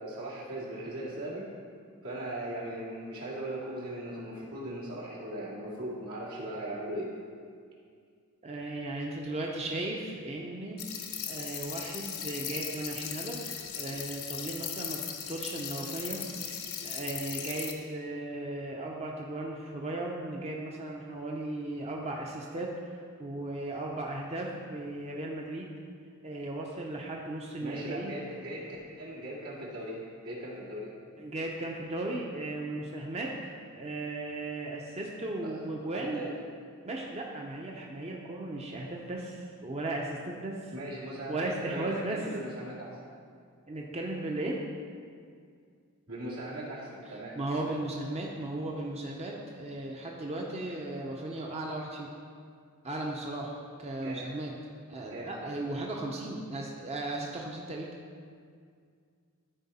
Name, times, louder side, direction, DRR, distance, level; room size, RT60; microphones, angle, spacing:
voice 1, 0.0-1.5 2.0-7.1 27.6-30.9 35.4-35.5 35.9-36.3 40.7-43.0 46.1-47.4 54.0-54.3 55.1-55.5, right 1 dB, 80° right, -6 dB, 2.4 m, -39 dB
voice 2, 8.4-10.8 11.3-13.4 13.7-15.0 15.3-25.7 26.2-28.2 31.2-36.2 36.8-40.7 41.3-42.2 43.7-44.6 47.1-52.1 52.8-54.5 54.9-57.9, right 2 dB, 30° right, -1 dB, 0.7 m, -36 dB
sound 1, 10.8-17.7, left 8 dB, 70° left, 0.9 m, -38 dB
13.5 x 4.5 x 4.2 m, 2.2 s
head